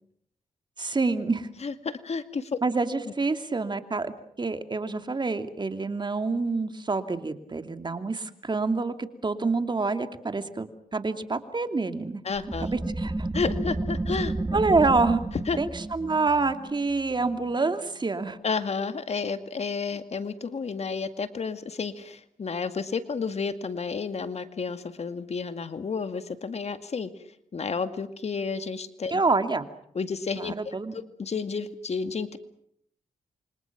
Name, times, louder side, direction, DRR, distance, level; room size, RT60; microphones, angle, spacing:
voice 1, 0.8-1.5 2.6-12.2 12.6-13.3 14.5-15.2 15.6-18.4 29.1-29.6 30.4-30.9, right 3 dB, 35° right, 8 dB, 2.6 m, -27 dB
voice 2, 1.6-2.6 12.2-12.7 13.3-14.3 15.5-15.6 18.4-27.1 27.5-29.2 29.9-30.6 30.9-32.4, left 5 dB, 55° left, 10 dB, 2.1 m, -31 dB
sound 1, 12.4-17.7, right 2 dB, 20° right, 1.8 m, -31 dB
28.5 x 26.0 x 6.1 m, 0.68 s
cardioid pair, 70°, 13 cm